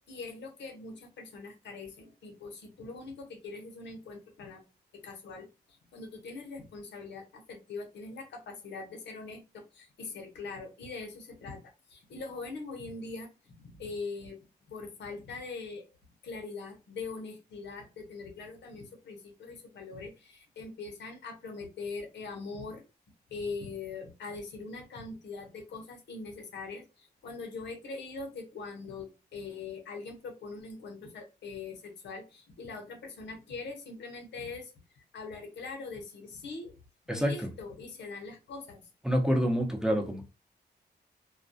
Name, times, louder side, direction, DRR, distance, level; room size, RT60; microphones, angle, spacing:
voice 1, 0.1-4.6 4.9-11.6 11.9-14.4 14.7-15.9 16.2-22.8 23.3-36.8 37.1-38.9, left 4 dB, 85° left, 0.7 m, -42 dB
voice 2, 37.1-37.5 39.0-40.2, equal, 5° right, 0.7 m, -27 dB
2.2 x 2.2 x 2.6 m
cardioid pair, 65°, 18 cm